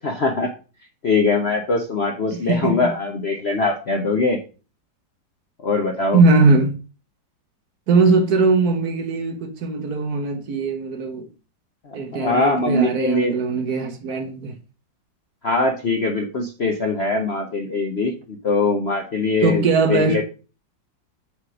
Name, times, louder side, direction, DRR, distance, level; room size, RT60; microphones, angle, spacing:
voice 1, 0.0-0.5 1.0-4.4 5.6-6.2 11.8-13.4 15.4-19.6 19.9-20.2, left 3 dB, 55° left, 0.7 m, -22 dB
voice 2, 2.3-2.9 6.1-6.7 7.9-11.3 11.9-14.5 19.4-20.2, right 3 dB, 60° right, 1.4 m, -20 dB
5.1 x 4.8 x 6.0 m
omnidirectional pair, 2.0 m